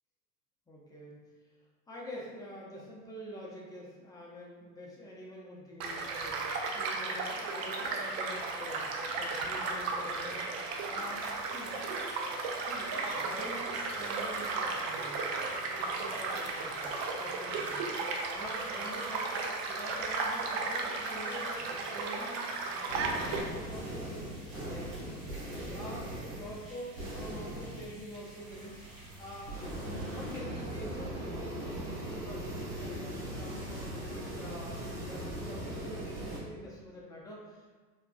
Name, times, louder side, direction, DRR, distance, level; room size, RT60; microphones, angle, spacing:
voice 1, 0.7-1.2 1.9-8.9 9.2-10.4 10.8-11.7 12.6-19.3 19.6-22.4 22.7-25.3 25.7-28.8 29.2-37.7, equal, 5° left, -5 dB, 0.7 m, -46 dB
Child speech kid speaking / Stream / Car passing by, 5.8-23.4, right 3 dB, 40° right, 0.5 m, -35 dB
sound 1, 11.0-30.4, right 1 dB, 25° right, 1.3 m, -55 dB
sound 2, 22.9-36.4, right 1 dB, 60° right, 1.2 m, -40 dB
4.5 x 2.5 x 2.3 m, 1.4 s
figure-of-eight pair, 80°, 49 cm